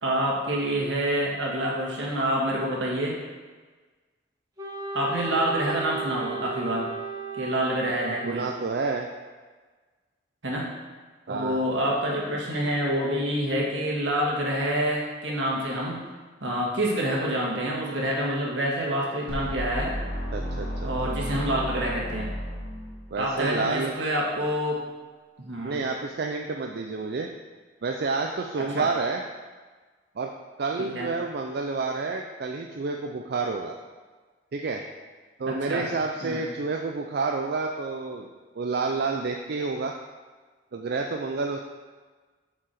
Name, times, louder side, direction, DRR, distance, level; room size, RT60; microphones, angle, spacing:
voice 1, 0.0-3.2 4.9-6.9 7.4-8.5 10.4-10.7 11.3-16.0 16.4-19.9 20.8-22.3 23.1-24.8 25.4-25.8 28.6-28.9 30.8-31.1 35.5-35.8 36.2-36.4, right 1 dB, 80° right, -2 dB, 1.7 m, -27 dB
Wind instrument woodwind instrument, 4.6-8.6, right 3 dB, 20° right, 1.2 m, -35 dB
voice 2, 8.2-9.1 11.3-11.6 20.3-20.9 23.1-24.0 25.6-27.3 27.8-29.2 30.2-30.3 30.6-33.7 34.5-34.8 35.4-38.3 38.6-39.9 40.7-41.6, right 4 dB, 60° right, 2 dB, 0.4 m, -29 dB
sound 1, 19.3-23.3, equal, 85° left, 1.6 m, -33 dB
7.2 x 4.7 x 4.9 m, 1.4 s
head